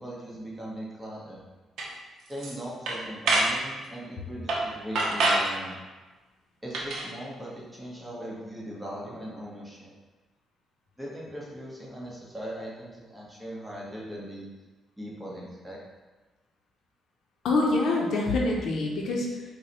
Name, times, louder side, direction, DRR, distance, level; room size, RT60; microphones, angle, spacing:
voice 1, 0.0-1.4 2.3-5.8 6.6-9.9 11.0-14.5 15.0-15.8, equal, 10° right, -5 dB, 1.0 m, -39 dB
sound 1, 1.8-1.9 2.3-2.5 2.9-3.6 4.5-4.7 5.0-5.5 6.7-7.1, right 2 dB, 75° right, 0.6 m, -25 dB
voice 2, 17.4-19.4, left 2 dB, 70° left, -1 dB, 0.6 m, -25 dB
4.6 x 2.1 x 2.9 m, 1.2 s
cardioid pair, 90°, 0 cm